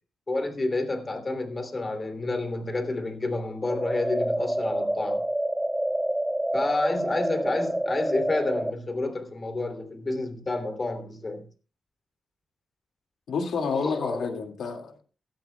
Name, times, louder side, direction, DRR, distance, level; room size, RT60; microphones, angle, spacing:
voice 1, 0.3-5.2 6.5-11.4 13.7-14.3, left 2 dB, 35° left, 3.0 m, -30 dB
sound 1, 3.7-8.7, right 1 dB, 10° right, 0.5 m, -27 dB
voice 2, 13.3-15.0, left 5 dB, 80° left, 2.1 m, -29 dB
17.0 x 13.0 x 2.3 m
cardioid pair, 85°, 0 cm